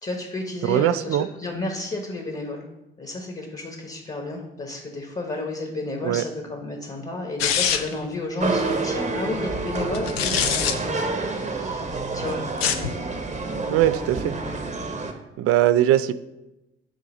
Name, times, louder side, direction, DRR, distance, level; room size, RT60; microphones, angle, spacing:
voice 1, 0.0-2.7 3.0-12.4, left 2 dB, 25° left, 2 dB, 1.2 m, -32 dB
voice 2, 0.6-1.3 6.0-6.2 13.7-14.4 15.4-16.1, right 13 dB, 50° right, 14 dB, 0.4 m, -20 dB
sound 1, 7.4-8.0 9.9-10.7 12.5-12.9, left 8 dB, 85° left, 0.5 m, -23 dB
sound 2, 8.4-15.1, right 3 dB, 25° right, 1.0 m, -28 dB
7.6 x 2.8 x 5.2 m, 0.96 s
hypercardioid pair, 50°, 30 cm